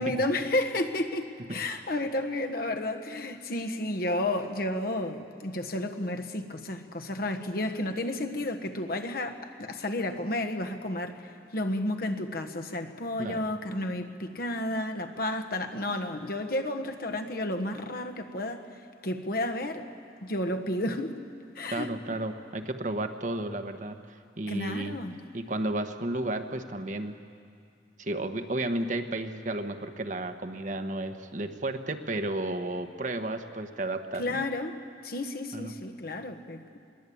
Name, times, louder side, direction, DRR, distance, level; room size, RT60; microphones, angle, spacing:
voice 1, 0.0-19.9 20.2-21.2 21.5-22.2 24.5-25.2 34.2-34.8 35.0-36.6, left 1 dB, 55° left, 5 dB, 1.4 m, -32 dB
voice 2, 21.7-25.0 25.3-27.2 28.0-34.4 35.5-35.7, right 2 dB, 45° right, 7 dB, 1.2 m, -33 dB
22.0 x 20.5 x 8.6 m, 2.3 s
head